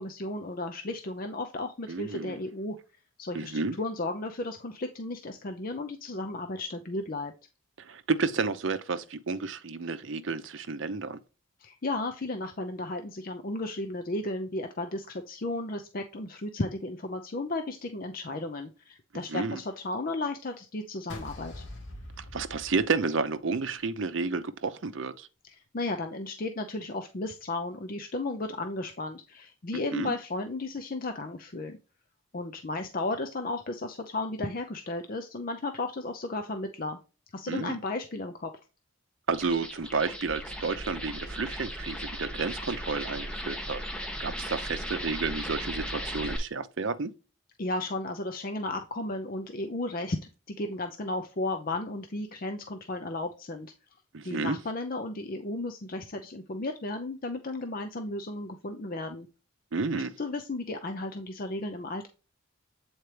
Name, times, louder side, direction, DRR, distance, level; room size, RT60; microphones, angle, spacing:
voice 1, 0.0-2.8 3.2-7.3 11.6-21.6 25.4-31.8 32.3-37.0 37.3-38.5 47.6-50.2 50.5-53.7 54.2-59.3 59.9-62.1, left 2 dB, 40° left, 0.6 m, -34 dB
voice 2, 1.9-2.4 3.3-3.8 7.9-11.2 19.3-19.6 22.3-25.3 29.7-30.1 37.5-37.8 39.3-43.8 44.2-47.1 54.1-54.6 59.7-60.1, right 4 dB, 60° right, 0.6 m, -31 dB
sound 1, 21.1-23.4, left 1 dB, 60° left, 2.1 m, -43 dB
sound 2, 39.3-46.4, equal, 5° left, 0.9 m, -37 dB
8.1 x 4.4 x 3.2 m
head